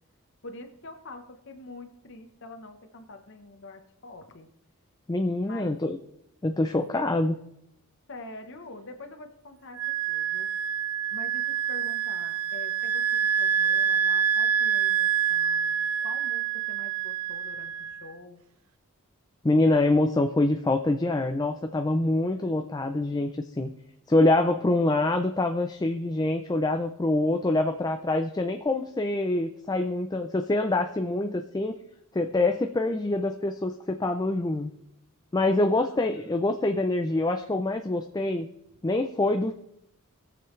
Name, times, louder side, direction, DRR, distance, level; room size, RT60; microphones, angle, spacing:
voice 1, 0.4-4.5 5.4-5.8 6.9-7.1 8.1-9.8 10.1-10.5 11.1-15.7 16.0-18.4 23.0-23.3 35.5-36.3, left 2 dB, 55° left, 6 dB, 1.1 m, -45 dB
voice 2, 5.1-6.0 6.4-7.3 19.4-23.7 24.1-31.8 32.1-34.7 35.3-38.5 38.8-39.5, left 2 dB, 20° left, 6 dB, 0.4 m, -25 dB
Wind instrument woodwind instrument, 9.8-18.0, right 8 dB, 70° right, 0.6 m, -26 dB
20.0 x 7.0 x 3.2 m, 0.79 s
head